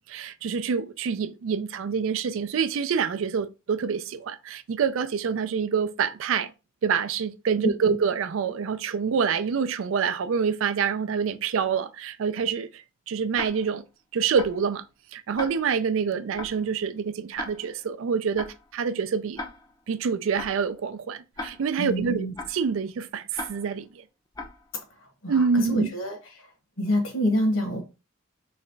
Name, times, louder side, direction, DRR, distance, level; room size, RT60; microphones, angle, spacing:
voice 1, 0.1-6.5 6.8-13.8 14.1-14.8 15.1-18.5 18.7-19.4 19.9-24.0 25.3-25.9, right 6 dB, 65° right, 0.4 m, -26 dB
Tick-tock, 13.3-13.8 14.4-14.7 15.4-15.8 16.4-16.7 17.4-17.8 18.4-18.7 19.4-19.8 20.4-20.7 21.4-21.8 22.4-22.7 23.3-23.8 24.3-24.7, left 2 dB, 20° left, 0.5 m, -38 dB
voice 2, 21.8-22.3 25.2-26.5 26.8-27.8, equal, 65° left, 1.3 m, -27 dB
3.3 x 3.0 x 3.9 m
head